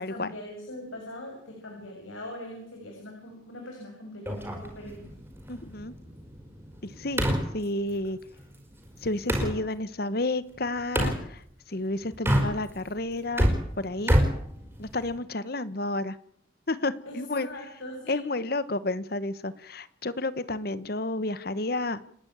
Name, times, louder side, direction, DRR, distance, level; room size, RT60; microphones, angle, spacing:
voice 1, 0.0-5.1 17.1-18.3, left 1 dB, 85° left, 1 dB, 6.9 m, -41 dB
sound 1, 4.3-9.6 10.9-11.2 12.1-12.9 13.2-15.2, equal, 10° right, 4.7 m, -28 dB
voice 2, 5.5-5.9 6.8-7.2 7.5-8.2 9.0-11.4 11.7-14.2 14.8-16.2 16.7-17.5 18.1-22.0, left 2 dB, 50° left, 16 dB, 1.1 m, -31 dB
29.5 x 11.5 x 8.8 m, 0.67 s
head